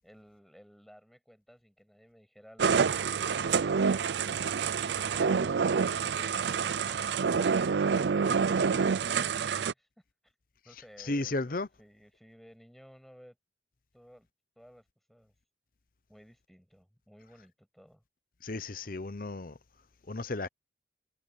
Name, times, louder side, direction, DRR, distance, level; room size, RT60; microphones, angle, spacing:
voice 1, 0.0-9.9 10.2-10.4 10.6-13.4 13.9-14.3 14.6-15.3 16.1-18.0, equal, ahead, 7.6 m, -57 dB
sound 1, 2.6-9.7, right 6 dB, 65° right, 0.5 m, -27 dB
voice 2, 11.0-11.7 18.4-19.6 20.1-20.5, left 2 dB, 45° left, 0.8 m, -34 dB
head